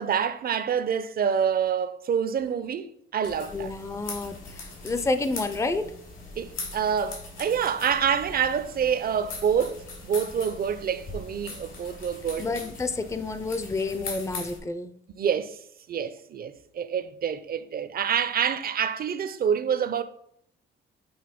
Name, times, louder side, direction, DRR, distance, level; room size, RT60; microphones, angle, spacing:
voice 1, 0.0-3.7 6.4-12.5 15.2-15.6 15.9-20.0, right 7 dB, 50° right, 0.6 m, -27 dB
sound 1, 3.2-14.6, left 3 dB, 85° left, 2.8 m, -41 dB
voice 2, 3.5-5.9 12.4-14.9, left 3 dB, 15° left, 0.5 m, -29 dB
8.0 x 3.0 x 5.1 m
cardioid pair, 90°, 20 cm